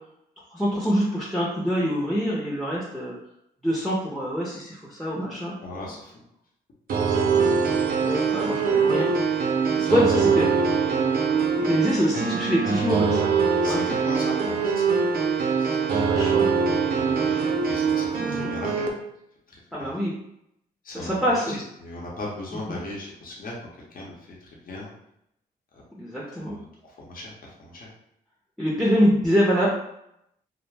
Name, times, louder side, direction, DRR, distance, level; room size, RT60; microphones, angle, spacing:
voice 1, 0.5-3.1 3.6-5.5 5.8-5.9 7.1-7.6 8.0-9.1 9.8-10.5 11.6-13.8 15.9-16.5 18.2-18.5 19.7-20.1 20.9-21.6 22.7-22.8 26.0-26.5 28.6-29.7, equal, ahead, -5 dB, 0.5 m, -25 dB
voice 2, 5.6-6.2 9.7-10.0 10.5-10.6 13.6-15.0 15.4-16.3 16.9-18.9 19.8-19.9 20.8-23.5 23.9-24.9 25.7-25.8 26.5-27.9, left 2 dB, 60° left, -3 dB, 0.8 m, -38 dB
sound 1, 6.9-18.9, right 5 dB, 60° right, 0.5 m, -23 dB
2.4 x 2.0 x 3.2 m, 0.78 s
cardioid pair, 85°, 17 cm